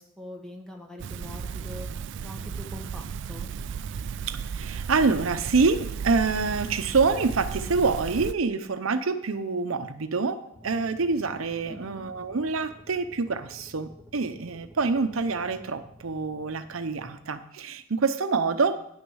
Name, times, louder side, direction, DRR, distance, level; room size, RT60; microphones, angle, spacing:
voice 1, 0.0-1.9 2.2-3.5 11.7-12.0, left 1 dB, 5° left, 2 dB, 1.3 m, -43 dB
sound 1, 1.0-8.3, right 6 dB, 60° right, 0.3 m, -35 dB
voice 2, 4.3-18.8, right 4 dB, 80° right, 10 dB, 0.7 m, -26 dB
sound 2, 10.5-17.3, equal, 15° right, 1.7 m, -51 dB
10.0 x 6.3 x 6.2 m, 0.71 s
head